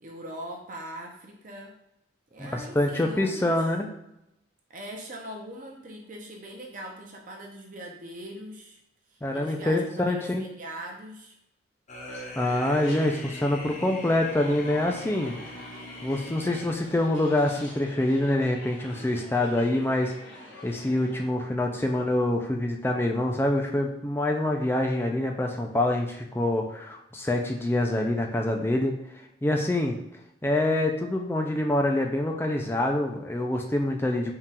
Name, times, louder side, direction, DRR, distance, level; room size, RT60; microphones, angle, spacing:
voice 1, 0.0-1.7 2.3-3.6 4.7-8.8 9.1-11.4, right 1 dB, 45° right, 0 dB, 0.6 m, -41 dB
voice 2, 2.4-3.9 9.2-10.5 12.4-15.4 16.0-30.0 30.4-34.3, left 1 dB, 10° left, 2 dB, 0.4 m, -26 dB
sound 1, 11.9-17.1, left 1 dB, 40° left, 0.7 m, -42 dB
sound 2, 12.8-21.2, left 2 dB, 85° left, 1.2 m, -45 dB
3.7 x 2.4 x 4.1 m, 0.81 s
head